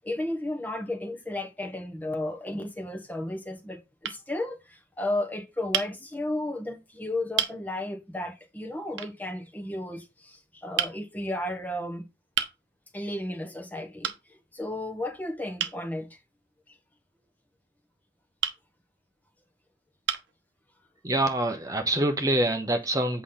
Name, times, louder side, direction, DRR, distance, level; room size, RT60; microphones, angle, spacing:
voice 1, 0.0-12.0 12.9-16.2 16.7-16.8, left 1 dB, 10° left, 1.1 m, -33 dB
sound 1, 2.3-2.9 3.6-3.7 4.0-4.2 5.7-5.9 6.8-6.9 7.4-7.6 9.0-9.2 10.8-11.0 12.4-12.6 14.0-14.2 15.6-15.8 18.4-18.6 19.4-19.5 20.1-20.4, right 9 dB, 90° right, 1.0 m, -30 dB
voice 2, 21.0-23.2, right 1 dB, 20° right, 0.9 m, -25 dB
8.4 x 5.6 x 3.8 m
head